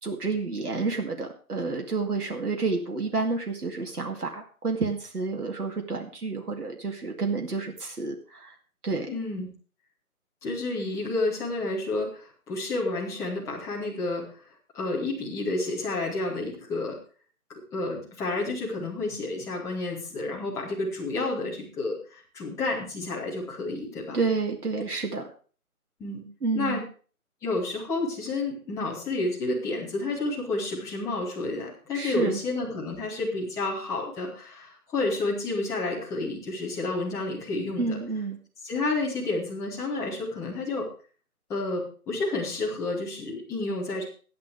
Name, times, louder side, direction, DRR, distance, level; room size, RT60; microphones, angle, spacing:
voice 1, 0.0-8.6 8.8-9.1 24.1-25.2 26.4-26.8 31.9-32.4 37.8-38.4, right 4 dB, 85° right, 3 dB, 2.4 m, -29 dB
voice 2, 9.1-9.5 10.4-14.3 14.7-17.0 17.5-24.2 26.0-26.2 26.5-26.8 27.4-38.0 38.6-40.9 41.5-44.0, left 2 dB, 5° left, -5 dB, 2.3 m, -30 dB
13.0 x 10.5 x 4.8 m, 0.40 s
figure-of-eight pair, 155°, 44 cm